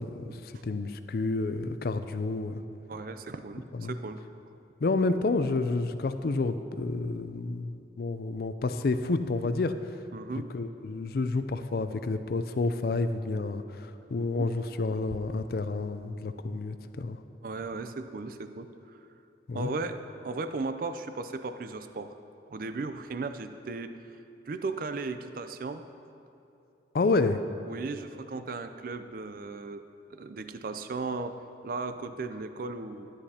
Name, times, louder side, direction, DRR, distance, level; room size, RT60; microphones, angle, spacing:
voice 1, 0.0-2.6 3.8-3.9 4.8-9.9 10.5-17.2 19.5-19.7 26.9-27.4, left 3 dB, 55° left, 10 dB, 0.4 m, -29 dB
voice 2, 2.9-4.2 10.1-10.5 14.2-14.5 15.1-15.2 17.4-19.0 19.5-22.2 22.5-24.1 24.5-25.9 27.7-33.1, right 3 dB, 50° right, 10 dB, 0.4 m, -36 dB
13.0 x 9.9 x 2.8 m, 2.7 s
head